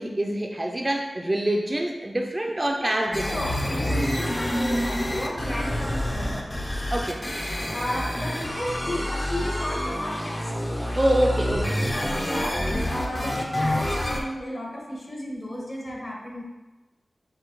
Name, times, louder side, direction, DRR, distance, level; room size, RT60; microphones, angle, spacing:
voice 1, 0.0-3.4 6.9-7.2 11.0-11.8, right 1 dB, 25° right, 2 dB, 0.4 m, -25 dB
voice 2, 2.8-6.4 7.7-10.4 12.2-16.4, equal, 45° left, -4 dB, 1.4 m, -33 dB
sound 1, 3.1-14.2, equal, 25° left, 0.6 m, -27 dB
6.3 x 2.7 x 3.0 m, 1.1 s
wide cardioid pair, 70°, 0 cm